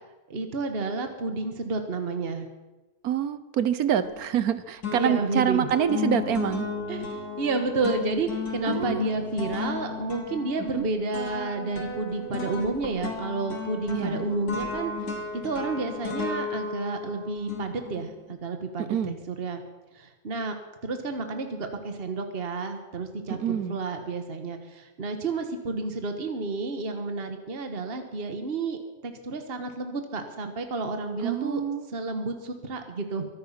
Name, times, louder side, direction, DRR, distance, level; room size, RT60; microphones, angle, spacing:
voice 1, 0.3-2.5 4.9-5.7 6.9-7.1 7.4-14.9 15.3-19.6 19.9-20.5 20.8-31.6 31.9-33.3, right 3 dB, 40° right, 6 dB, 1.7 m, -31 dB
voice 2, 3.0-6.7 8.6-9.0 10.7-10.9 13.9-14.3 18.8-19.2 23.3-23.8 31.2-31.8, right 9 dB, 75° right, 13 dB, 1.4 m, -26 dB
sound 1, 4.0-4.5 4.8-18.2, left 5 dB, 85° left, 3.1 m, -34 dB
23.5 x 9.7 x 5.7 m, 1.1 s
omnidirectional pair, 1.6 m